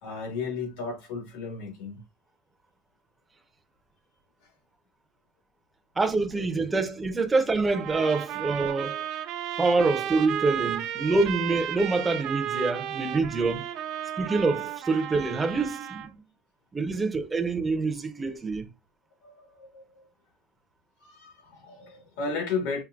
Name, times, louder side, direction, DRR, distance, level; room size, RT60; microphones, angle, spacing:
voice 1, 0.0-2.0 19.2-20.1 21.0-22.8, left 4 dB, 75° left, 1.9 m, -34 dB
voice 2, 6.0-9.1 9.6-13.7 14.2-16.2 16.7-18.7, right 3 dB, 10° right, 0.6 m, -26 dB
sound 1, 7.7-16.1, right 11 dB, 50° right, 0.6 m, -33 dB
5.7 x 2.7 x 2.5 m
cardioid pair, 165°, 0 cm